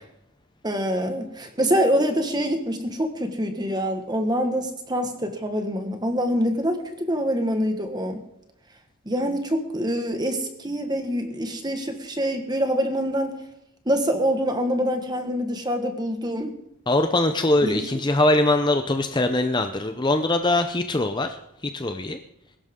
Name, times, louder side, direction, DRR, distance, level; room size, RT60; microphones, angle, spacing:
voice 1, 0.6-8.2 9.0-13.3 13.8-16.6 17.6-17.9, equal, 20° right, 6 dB, 1.5 m, -25 dB
voice 2, 16.9-21.4 21.7-22.2, left 2 dB, 20° left, 7 dB, 0.6 m, -22 dB
21.5 x 12.0 x 3.7 m, 0.82 s
head